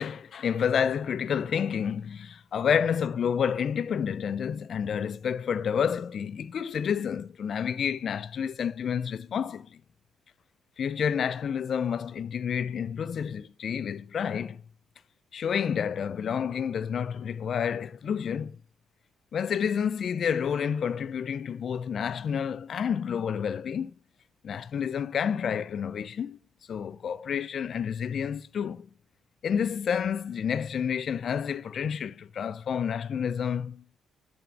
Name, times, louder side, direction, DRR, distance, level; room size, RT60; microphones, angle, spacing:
voice 1, 0.0-9.7 10.8-14.6 15.3-18.6 19.3-23.9 24.4-26.4 26.7-28.9 29.4-33.8, left 7 dB, 55° left, 0.4 m, -29 dB
6.8 x 3.5 x 5.2 m
cardioid pair, 90°, 0 cm